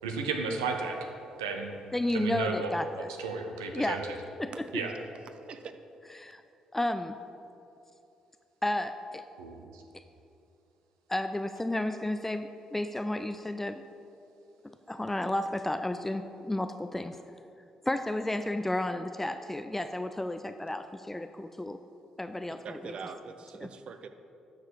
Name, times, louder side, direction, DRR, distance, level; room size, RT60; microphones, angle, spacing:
voice 1, 0.0-1.1 1.4-1.7 2.1-4.1 4.7-4.9 9.4-9.8, right 4 dB, 85° right, 3 dB, 0.8 m, -33 dB
voice 2, 1.9-3.1 3.7-4.0 4.4-4.6 6.2-6.4 6.7-7.2 8.6-9.2 11.1-13.8 14.6-17.2 17.8-21.8 22.2-22.9 23.6-23.7, left 1 dB, 15° left, 8 dB, 0.4 m, -32 dB
voice 3, 22.6-24.1, right 5 dB, 55° right, 9 dB, 0.7 m, -42 dB
12.0 x 4.8 x 4.7 m, 2.7 s
hypercardioid pair, 45°, 2 cm